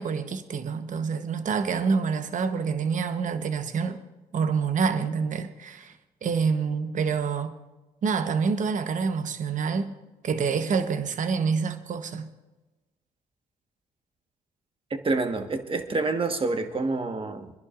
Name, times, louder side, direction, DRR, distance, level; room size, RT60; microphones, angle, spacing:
voice 1, 0.0-4.0 4.3-5.9 6.2-7.6 8.0-9.9 10.2-12.3, right 5 dB, 55° right, 1.0 m, -27 dB
voice 2, 15.0-17.5, right 3 dB, 35° right, 1.5 m, -27 dB
26.0 x 11.0 x 2.5 m
supercardioid pair, 65°, 16 cm